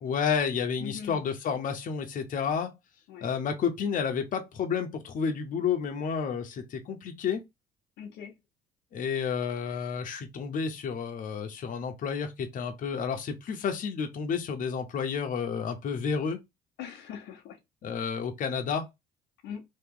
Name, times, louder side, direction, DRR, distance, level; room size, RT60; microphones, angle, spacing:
voice 1, 0.0-2.7 3.2-7.4 8.9-16.4 17.8-18.9, left 6 dB, 50° left, 0.9 m, -30 dB
voice 2, 0.8-1.2 3.1-3.3 8.0-8.3 16.8-17.6 19.4-19.6, left 8 dB, 80° left, 0.7 m, -41 dB
2.9 x 2.9 x 3.7 m
cardioid pair, 110°, 17 cm